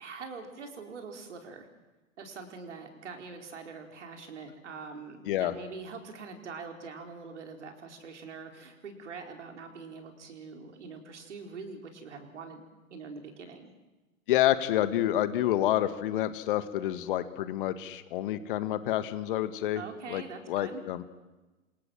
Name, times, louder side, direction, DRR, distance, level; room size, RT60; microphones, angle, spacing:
voice 1, 0.0-1.7 2.2-13.7 19.7-20.8, right 4 dB, 55° right, 4 dB, 4.8 m, -44 dB
voice 2, 14.3-19.8 20.1-20.2 20.5-21.0, left 13 dB, 40° left, 13 dB, 1.8 m, -28 dB
29.0 x 26.5 x 7.7 m, 1.1 s
figure-of-eight pair, 110°, 41 cm